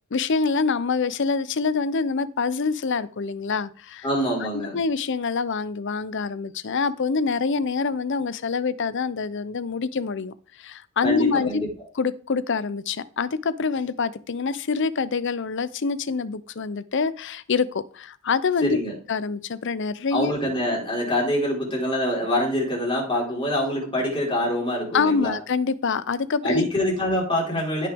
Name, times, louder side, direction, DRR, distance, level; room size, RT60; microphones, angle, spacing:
voice 1, 0.1-4.1 4.7-11.6 11.9-18.8 19.1-20.3 24.9-26.7, left 4 dB, 60° left, 16 dB, 0.6 m, -25 dB
voice 2, 4.0-4.8 11.0-11.7 18.6-18.9 20.1-25.4 26.4-27.9, left 1 dB, 25° left, -3 dB, 4.3 m, -25 dB
16.0 x 6.0 x 3.6 m, 0.41 s
head